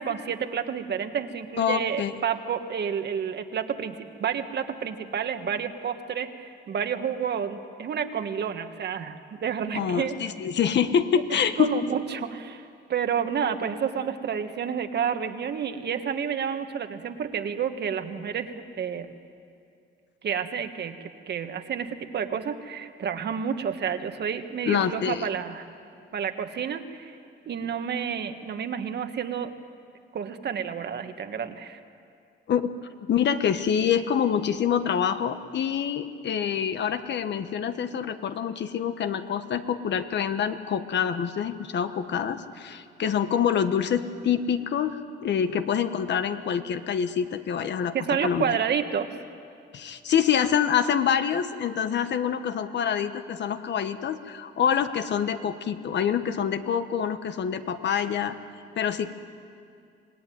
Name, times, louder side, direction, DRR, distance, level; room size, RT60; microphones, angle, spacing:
voice 1, 0.0-10.2 11.3-19.1 20.2-21.0 21.3-25.6 26.1-27.1 27.5-29.5 30.1-31.8 47.9-49.1, right 7 dB, 60° right, 8 dB, 1.7 m, -30 dB
voice 2, 1.6-2.1 9.7-11.7 24.6-25.3 32.5-32.7 33.0-47.9 48.2-48.6 49.7-58.3 58.8-59.1, left 8 dB, 60° left, 9 dB, 1.4 m, -26 dB
26.5 x 18.5 x 9.5 m, 2.4 s
cardioid pair, 90°, 20 cm